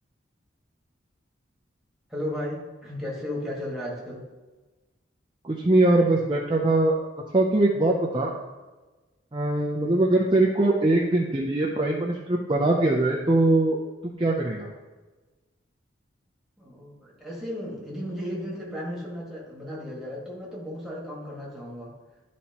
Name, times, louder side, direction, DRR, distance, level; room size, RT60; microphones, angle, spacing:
voice 1, 2.1-4.3 16.6-22.0, left 1 dB, ahead, -5 dB, 1.6 m, -35 dB
voice 2, 5.4-6.9 7.3-8.3 9.3-13.8 14.2-14.7, right 2 dB, 25° right, -2 dB, 0.5 m, -22 dB
11.0 x 4.2 x 2.9 m, 1.2 s
head